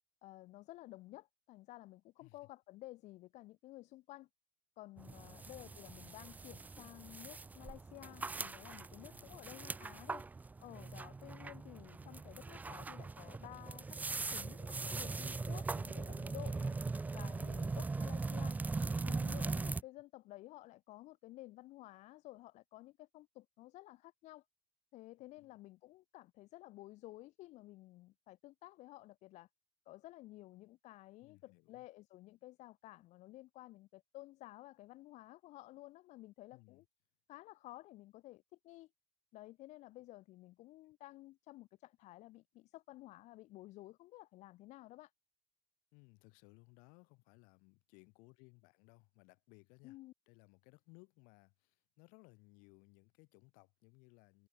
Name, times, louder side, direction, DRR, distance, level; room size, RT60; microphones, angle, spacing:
voice 1, 0.2-4.3 4.8-10.3 10.6-16.8 17.1-18.6 19.0-24.4 24.9-29.5 29.9-36.8 37.3-38.9 39.3-45.1 49.8-50.1, left 17 dB, 55° left, 0.5 m, -54 dB
sound 1, 5.0-19.8, right 3 dB, 10° right, 0.4 m, -40 dB
voice 2, 5.2-5.9 9.0-9.6 12.0-12.2 25.4-25.6 31.2-31.9 36.5-36.8 45.9-50.0 50.3-54.5, left 30 dB, 75° left, 4.6 m, -63 dB
cardioid pair, 120°, 14 cm